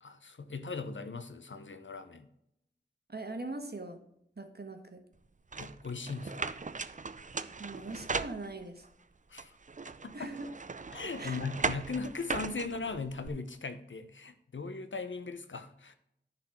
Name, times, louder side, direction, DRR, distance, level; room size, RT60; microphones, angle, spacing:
voice 1, 0.0-2.3 5.6-6.6 9.3-9.6 10.0-10.3 10.9-15.9, left 4 dB, 90° left, 10 dB, 0.8 m, -39 dB
voice 2, 3.1-4.0 4.4-5.0 7.6-8.9 10.1-10.5 11.2-11.4, right 2 dB, 60° right, 6 dB, 1.4 m, -41 dB
sound 1, 5.5-8.9 9.4-13.3, right 4 dB, 40° right, 0.5 m, -38 dB
10.5 x 4.2 x 5.8 m, 0.77 s
wide cardioid pair, 50°, 19 cm